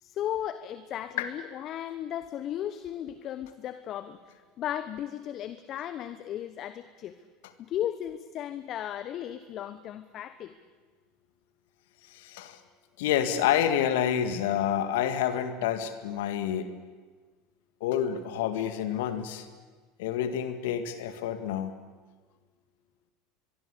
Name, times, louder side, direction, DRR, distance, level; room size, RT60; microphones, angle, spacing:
voice 1, 0.0-7.2 7.6-10.5, left 11 dB, 45° left, 12 dB, 1.1 m, -35 dB
voice 2, 12.1-12.6 13.0-16.7 17.8-19.5 20.0-21.7, left 9 dB, 70° left, 9 dB, 1.9 m, -28 dB
23.5 x 22.5 x 8.4 m, 1.4 s
hypercardioid pair, 80°, 0 cm